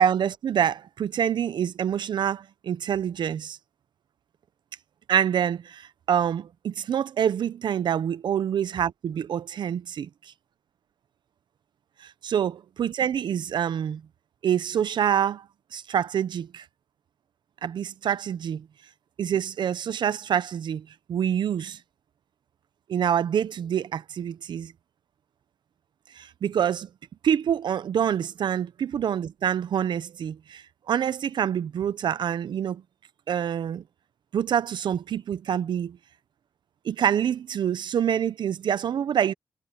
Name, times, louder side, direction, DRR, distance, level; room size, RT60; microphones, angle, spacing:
voice 1, 0.0-3.6 5.1-10.1 12.0-14.0 14.4-15.4 15.7-16.6 17.6-18.7 19.2-21.8 22.9-24.7 26.1-26.9 27.2-32.8 33.3-33.8 34.3-36.0 36.8-39.3, right 9 dB, 75° right, 0.6 m, -26 dB
wide cardioid pair, 105°, 8 cm